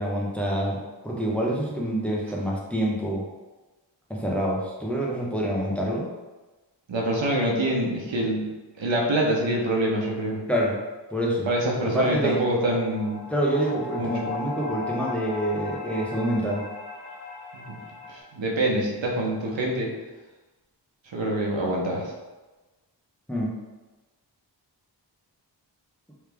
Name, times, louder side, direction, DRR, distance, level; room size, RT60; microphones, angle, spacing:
voice 1, 0.0-3.2 4.1-6.1 10.5-10.8 11.1-11.5 11.8-12.4 13.3-16.6 23.3-23.5, right 1 dB, 5° left, -3 dB, 0.9 m, -26 dB
voice 2, 6.9-8.5 8.8-10.4 11.5-13.2 14.0-14.1 17.7-17.8 18.1-19.9 21.1-22.1, right 1 dB, 90° right, -2 dB, 0.9 m, -25 dB
sound 1, 12.2-18.2, left 4 dB, 75° left, 1.5 m, -37 dB
3.3 x 3.2 x 3.4 m, 1.2 s
wide cardioid pair, 60°, 44 cm